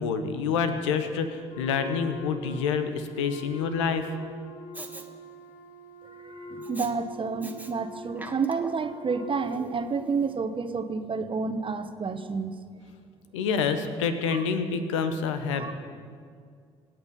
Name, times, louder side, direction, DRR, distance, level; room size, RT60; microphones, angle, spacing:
voice 1, 0.0-4.1 13.3-15.7, left 6 dB, 80° left, 9 dB, 1.1 m, -27 dB
Wind instrument woodwind instrument, 1.5-10.3, left 1 dB, 55° left, 3.4 m, -44 dB
Respiratory sounds, 4.7-5.1 6.6-6.9 7.4-7.7 8.1-8.9 9.5-9.6, right 2 dB, 10° right, 1.8 m, -42 dB
voice 2, 6.0-12.6 14.3-14.4 15.5-15.7, right 5 dB, 35° right, 9 dB, 1.3 m, -30 dB
25.0 x 9.0 x 5.4 m, 2.1 s
hypercardioid pair, 50°, 15 cm